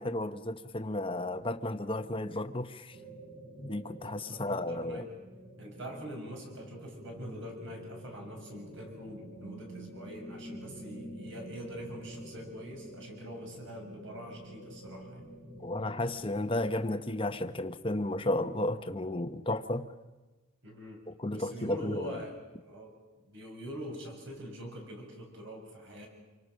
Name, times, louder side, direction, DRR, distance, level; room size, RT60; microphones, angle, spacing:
voice 1, 0.0-3.0 3.6-5.1 15.6-19.9 21.2-22.1, left 1 dB, 25° left, 9 dB, 1.0 m, -33 dB
sound 1, 2.9-16.9, right 1 dB, 80° right, 6.9 m, -48 dB
voice 2, 4.2-5.1 5.6-15.2 20.6-22.4 22.6-23.0 23.2-26.1, equal, 55° right, 1 dB, 6.9 m, -44 dB
27.5 x 24.5 x 6.4 m, 1.2 s
head